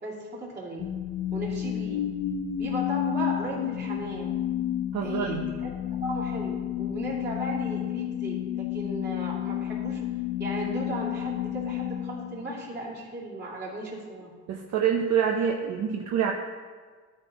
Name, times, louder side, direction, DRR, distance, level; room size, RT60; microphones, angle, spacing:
voice 1, 0.0-0.8 1.3-2.1 2.6-4.3 5.0-5.7 6.0-10.0 10.4-14.3, right 1 dB, 35° right, -5 dB, 2.7 m, -36 dB
sound 1, 0.8-13.0, left 11 dB, 80° left, 0.6 m, -31 dB
voice 2, 4.9-5.5 14.5-16.3, right 8 dB, 65° right, 1 dB, 0.8 m, -26 dB
13.0 x 4.3 x 4.1 m, 1.5 s
cardioid pair, 105°, 31 cm